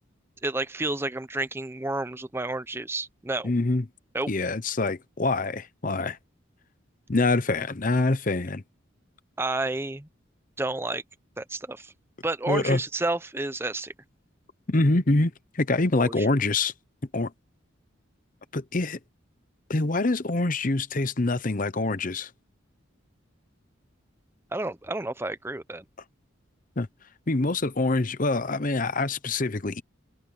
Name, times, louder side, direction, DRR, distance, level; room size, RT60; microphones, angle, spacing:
voice 1, 0.4-3.5 4.1-4.3 9.4-10.1 10.6-11.0 11.4-11.9 12.2-13.9 16.0-16.3 24.5-25.8, right 2 dB, 10° right, 0.6 m, -30 dB
voice 2, 3.4-3.9 4.3-6.2 7.1-8.6 12.5-12.8 14.7-16.7 17.1-17.3 18.5-19.0 19.7-22.3 26.8-26.9 27.3-29.8, left 2 dB, 45° left, 0.9 m, -25 dB
head